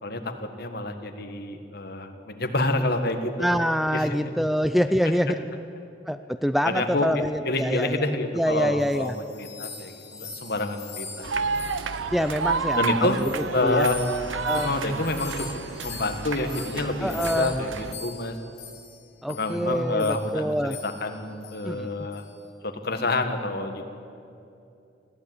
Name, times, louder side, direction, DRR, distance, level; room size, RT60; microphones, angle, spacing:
voice 1, 0.0-0.3 0.6-3.6 3.9-4.3 6.7-7.1 7.5-11.3 12.8-13.2 13.5-14.0 14.5-15.5 15.8-18.4 19.3-22.2 22.6-23.8, left 2 dB, 55° left, 6 dB, 1.8 m, -28 dB
voice 2, 3.4-5.4 6.1-8.1 8.3-9.2 12.1-13.9 14.4-14.7 17.0-17.6 19.2-20.8 21.6-21.9, equal, ahead, 10 dB, 0.4 m, -25 dB
sound 1, 8.5-12.8 13.1-19.0 19.3-19.5 20.0-20.3 20.7-21.1 21.4-21.6 22.1-22.4, left 6 dB, 40° left, 3.8 m, -42 dB
sound 2, 11.2-17.9, right 4 dB, 85° right, 0.9 m, -31 dB
20.0 x 15.0 x 9.7 m, 2.7 s
head